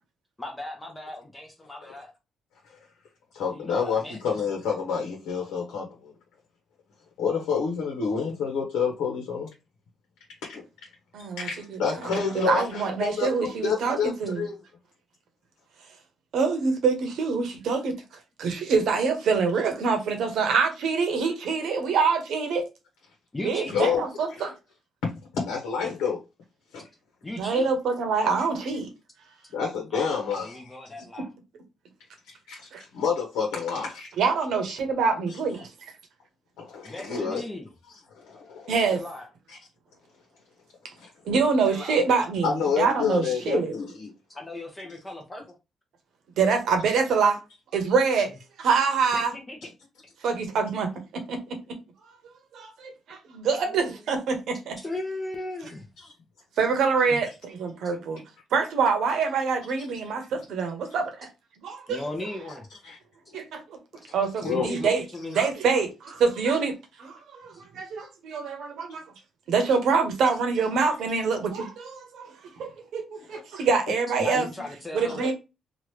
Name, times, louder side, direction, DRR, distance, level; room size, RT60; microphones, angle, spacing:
voice 1, 0.4-2.1 3.5-4.4 23.3-24.0 27.2-27.7 29.9-31.3 36.8-37.7 38.9-39.3 41.7-42.0 44.4-45.6 49.1-49.7 53.7-53.9 54.8-55.9 57.0-57.2 61.9-62.7 64.0-64.1 64.4-65.4 67.5-67.6 74.2-75.3, left 2 dB, 20° left, 0.7 m, -37 dB
voice 2, 3.3-6.1 7.2-9.5 10.4-10.6 11.4-14.5 23.7-24.0 24.3-24.4 25.0-26.2 26.7-26.8 29.5-30.8 32.3-34.1 35.3-35.4 36.6-37.4 38.1-38.7 41.0-41.1 42.4-44.1 56.0-56.1 59.8-59.9 62.8-63.0 64.1-64.2 64.4-64.7 73.3-73.4, left 6 dB, 90° left, 0.9 m, -29 dB
voice 3, 11.1-11.5 12.0-14.4 16.3-17.9 18.4-22.7 23.4-24.5 27.4-28.9 32.7-32.8 34.2-35.7 38.7-39.0 41.2-43.7 46.4-47.4 47.7-48.3 48.6-49.3 50.2-50.9 51.3-51.4 52.5-54.8 56.6-58.2 58.5-61.3 61.6-62.0 63.3-63.8 64.1-65.0 65.3-69.0 69.5-72.3 72.6-74.5 74.9-75.3, right 5 dB, 75° right, 0.9 m, -25 dB
3.0 x 2.4 x 3.1 m
cardioid pair, 90°, 0 cm